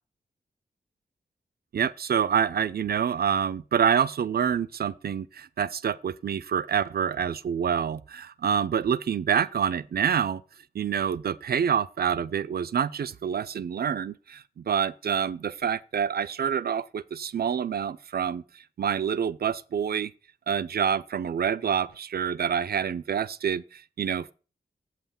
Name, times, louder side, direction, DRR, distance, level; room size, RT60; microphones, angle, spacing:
voice 1, 1.7-10.4 10.7-18.4 18.8-20.1 20.5-24.3, right 8 dB, 70° right, 0.5 m, -27 dB
7.9 x 5.8 x 7.0 m
wide cardioid pair, 115°, 17 cm